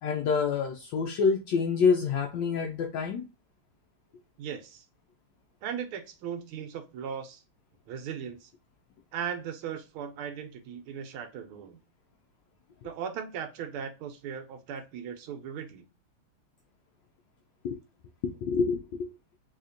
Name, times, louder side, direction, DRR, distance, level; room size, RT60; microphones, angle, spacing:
voice 1, 0.0-3.2 17.6-17.8 18.2-19.1, left 5 dB, 75° left, 1.1 m, -27 dB
voice 2, 4.4-4.8 5.6-7.4 7.9-8.5 9.1-11.8 12.8-15.8, right 8 dB, 85° right, 1.5 m, -38 dB
4.1 x 2.8 x 2.5 m
omnidirectional pair, 2.3 m